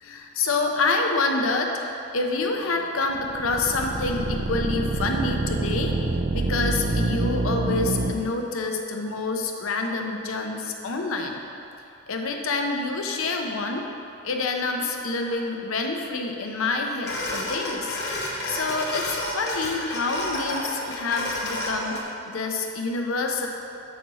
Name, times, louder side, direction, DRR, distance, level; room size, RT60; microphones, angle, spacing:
voice 1, 0.0-1.7 2.1-5.9 6.3-11.4 12.1-13.8 14.2-18.0 18.2-22.0 22.2-23.5, left 3 dB, 70° left, 2 dB, 0.7 m, -27 dB
sound 1, 3.1-8.1, right 2 dB, 45° right, 0.4 m, -26 dB
sound 2, 17.0-22.0, left 1 dB, 50° left, 1.0 m, -31 dB
6.0 x 4.1 x 6.1 m, 2.7 s
head